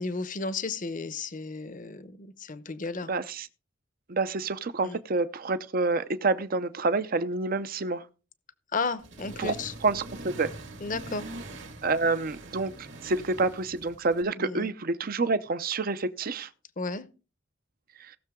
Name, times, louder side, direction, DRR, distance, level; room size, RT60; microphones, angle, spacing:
voice 1, 0.0-3.1 4.8-5.0 8.7-9.7 10.8-11.3 14.2-14.7 16.8-17.1, left 3 dB, 45° left, 0.9 m, -33 dB
voice 2, 3.1-3.5 4.1-8.0 9.4-9.5 9.8-10.5 11.8-16.5, right 3 dB, 50° right, 0.7 m, -28 dB
Accelerating revving vroom, 9.0-14.2, right 2 dB, 70° right, 2.1 m, -43 dB
18.0 x 6.7 x 3.7 m
head